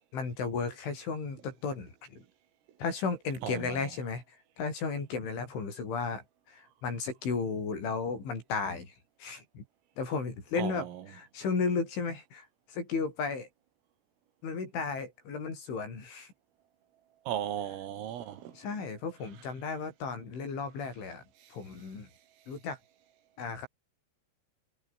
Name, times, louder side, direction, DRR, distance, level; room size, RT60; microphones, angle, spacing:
voice 1, 0.1-2.2 2.8-9.0 9.2-9.6 10.0-13.5 14.4-16.3 18.5-21.2 21.5-22.1 22.5-22.8 23.4-23.7, left 4 dB, 70° left, 10.5 m, -34 dB
voice 2, 3.4-3.8 10.6-11.0 17.3-18.6, right 11 dB, 90° right, 5.3 m, -36 dB
omnidirectional pair, 5.8 m